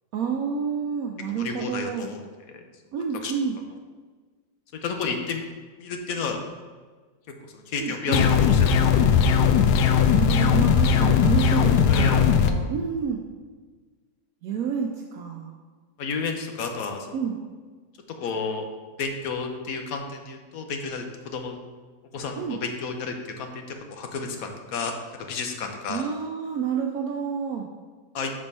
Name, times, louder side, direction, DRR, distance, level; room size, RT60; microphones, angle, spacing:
voice 1, 0.1-2.1 2.9-3.6 7.8-8.2 10.1-13.2 14.4-15.5 17.1-17.4 22.4-22.6 25.9-27.7, right 7 dB, 70° right, 1 dB, 1.0 m, -29 dB
voice 2, 1.4-2.2 3.2-3.3 4.8-5.4 5.8-6.4 7.7-9.1 11.9-12.2 16.0-17.1 18.2-18.6 19.0-21.6 22.1-24.9 25.2-26.0 28.1-28.3, left 4 dB, 65° left, 4 dB, 1.2 m, -31 dB
sound 1, 8.1-12.5, left 7 dB, 85° left, 1.2 m, -19 dB
6.1 x 4.3 x 5.3 m, 1.4 s
omnidirectional pair, 1.7 m